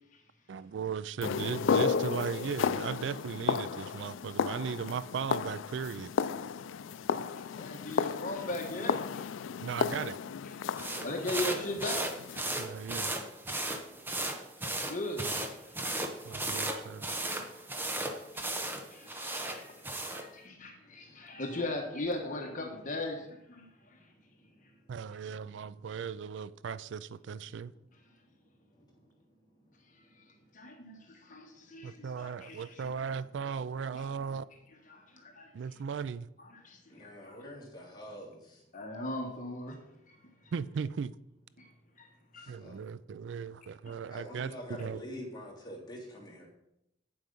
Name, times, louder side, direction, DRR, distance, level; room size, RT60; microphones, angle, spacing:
voice 1, 0.5-6.1 9.6-10.2 12.6-13.2 16.2-17.1 24.9-27.7 31.8-34.5 35.5-36.3 40.5-41.2 42.5-45.0, right 6 dB, 70° right, 0.3 m, -37 dB
sound 1, 1.2-12.4, left 6 dB, 90° left, 0.4 m, -33 dB
voice 2, 7.2-9.2 10.6-12.1 14.8-15.3 15.6-15.8 18.3-18.6 18.9-24.0 30.2-30.3 30.5-32.8 33.9-34.0 34.9-35.5 36.5-37.4 38.7-39.8 40.1-40.2 40.4-40.5 41.6-41.7 42.0-42.1 42.3-42.5, left 2 dB, 40° left, 1.3 m, -39 dB
sound 2, 10.8-20.3, right 1 dB, 10° right, 0.8 m, -36 dB
voice 3, 36.9-38.4 42.6-42.8 44.1-46.5, equal, 20° left, 2.9 m, -45 dB
8.7 x 7.6 x 5.3 m
head